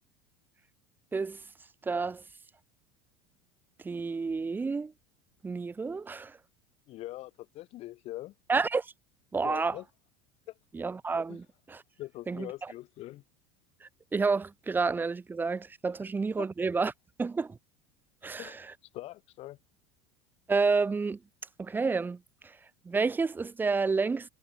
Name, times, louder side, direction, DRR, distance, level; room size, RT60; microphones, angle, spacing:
voice 1, 1.8-2.2 3.8-4.9 5.4-6.4 8.5-8.9 9.3-9.8 10.7-11.8 12.3-12.5 13.8-16.9 17.2-17.6 18.2-18.6 20.5-21.2 21.6-22.6 22.8-24.3, right 4 dB, 15° right, 0.6 m, -30 dB
voice 2, 6.9-8.3 9.4-9.8 10.5-10.6 11.3-11.4 12.0-13.2 16.4-16.5 18.4-18.6 18.9-19.6, left 16 dB, 50° left, 1.4 m, -42 dB
supercardioid pair, 105°, 13 cm